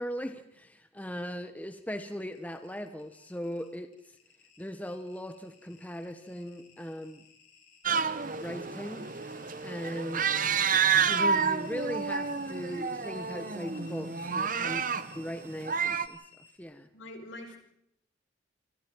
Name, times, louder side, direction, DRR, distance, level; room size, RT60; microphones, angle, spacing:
voice 1, 0.0-4.2 4.6-7.2 8.4-9.1 9.6-10.3 11.0-14.8 15.2-16.2 16.6-16.9, equal, 10° left, 8 dB, 1.1 m, -38 dB
sound 1, 1.7-16.6, left 6 dB, 45° left, 7.8 m, -57 dB
sound 2, 7.8-16.1, right 6 dB, 40° right, 1.0 m, -29 dB
voice 2, 14.4-14.8 16.9-17.6, left 2 dB, 75° left, 3 dB, 5.6 m, -43 dB
28.0 x 26.5 x 4.7 m, 0.76 s
head